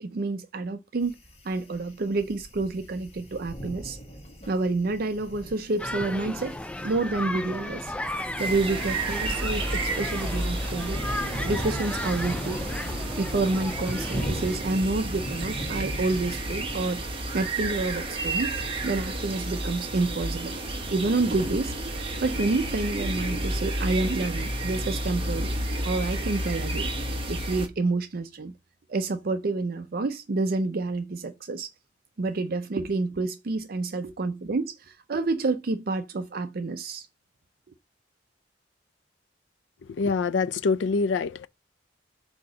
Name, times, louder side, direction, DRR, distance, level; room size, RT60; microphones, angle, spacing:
voice 1, 0.0-1.1 1.4-4.0 4.5-6.6 6.8-7.9 8.4-11.0 11.4-12.6 13.2-18.5 18.8-20.5 20.9-21.7 22.2-25.5 25.8-26.9 27.3-28.5 28.9-31.7 32.2-37.1, right 3 dB, 55° right, 0.5 m, -28 dB
sound 1, 1.0-16.9, right 1 dB, 35° left, 1.3 m, -40 dB
sound 2, 5.8-14.6, left 1 dB, 5° left, 0.3 m, -35 dB
sound 3, 8.4-27.7, right 1 dB, 30° right, 1.1 m, -31 dB
voice 2, 40.0-41.5, left 4 dB, 80° left, 0.4 m, -25 dB
7.8 x 2.9 x 5.2 m
head